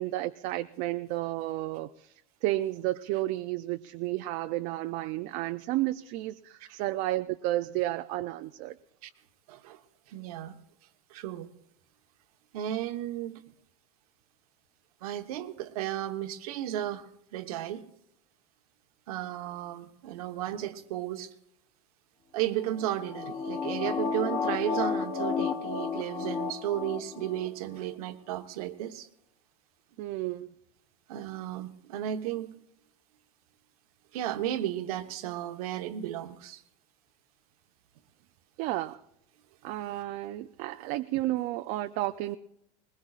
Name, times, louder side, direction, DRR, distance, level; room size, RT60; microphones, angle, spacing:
voice 1, 0.0-2.1 2.4-8.7 30.0-30.5 38.6-39.0 39.6-42.4, right 16 dB, 50° right, 0.5 m, -32 dB
voice 2, 9.5-9.8 10.1-10.5 11.1-11.5 12.5-13.4 15.0-17.8 19.1-21.3 22.3-29.1 31.1-32.5 34.1-36.6 41.1-41.3, right 12 dB, 90° right, 1.2 m, -34 dB
sound 1, 22.7-27.5 27.8-27.9, left 5 dB, 25° left, 0.9 m, -32 dB
21.0 x 20.5 x 2.5 m
supercardioid pair, 160°, 18 cm